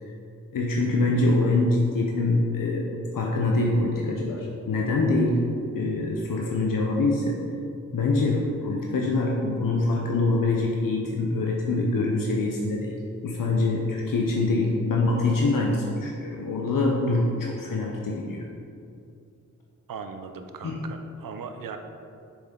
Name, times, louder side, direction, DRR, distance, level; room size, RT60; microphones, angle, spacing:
voice 1, 0.5-2.9 3.1-5.5 5.7-7.4 7.9-18.4 20.6-20.8, left 2 dB, 80° left, -1 dB, 0.8 m, -24 dB
voice 2, 19.9-21.8, right 5 dB, 85° right, 7 dB, 0.6 m, -38 dB
7.0 x 6.1 x 3.8 m, 2.6 s
cardioid pair, 65°, 33 cm